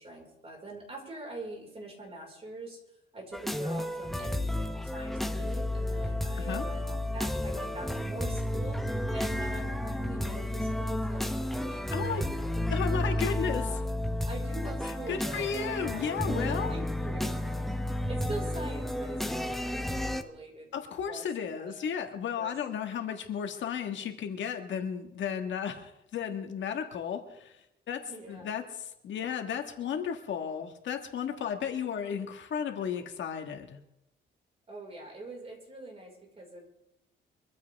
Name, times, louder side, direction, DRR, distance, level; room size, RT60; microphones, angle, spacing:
voice 1, 0.0-2.8 3.1-12.8 13.3-13.7 14.2-17.3 18.1-21.2 21.5-21.9 22.3-22.5 28.0-28.5 34.7-36.7, right 1 dB, 30° right, 0 dB, 5.0 m, -43 dB
sound 1, 3.3-20.2, left 1 dB, ahead, 0.8 m, -32 dB
voice 2, 11.9-12.2 12.7-13.7 14.8-16.7 20.7-27.6 27.9-33.8, left 7 dB, 65° left, 5 dB, 1.6 m, -34 dB
24.0 x 14.5 x 3.5 m, 0.86 s
cardioid pair, 155°, 21 cm